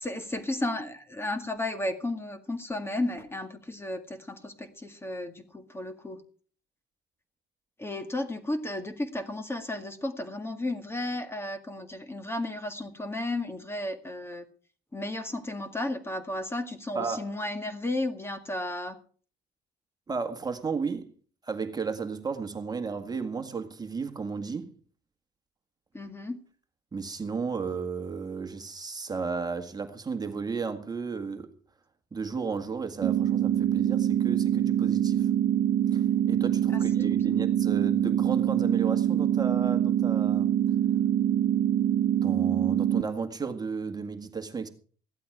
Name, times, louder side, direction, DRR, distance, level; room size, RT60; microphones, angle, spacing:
voice 1, 0.0-6.2 7.8-14.5 14.9-19.0 25.9-26.4 36.7-36.8 37.1-37.4, left 1 dB, 15° left, 1.9 m, -33 dB
voice 2, 16.9-17.3 20.1-21.1 21.4-24.7 26.9-31.5 32.1-35.3 35.9-40.5 42.2-44.7, right 5 dB, 25° right, 1.8 m, -33 dB
sound 1, 33.0-43.0, right 10 dB, 55° right, 1.1 m, -24 dB
16.0 x 12.0 x 4.9 m
cardioid pair, 110°, 17 cm